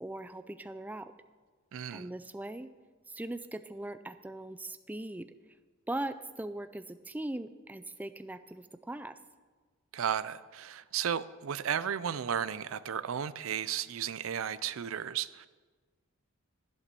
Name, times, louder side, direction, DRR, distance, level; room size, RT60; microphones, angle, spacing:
voice 1, 0.0-1.1 1.9-2.7 3.1-5.3 5.9-9.2, right 1 dB, 10° right, 11 dB, 0.4 m, -40 dB
voice 2, 1.7-2.1 9.9-15.5, right 8 dB, 70° right, 16 dB, 0.5 m, -34 dB
14.0 x 8.1 x 6.8 m, 1.4 s
head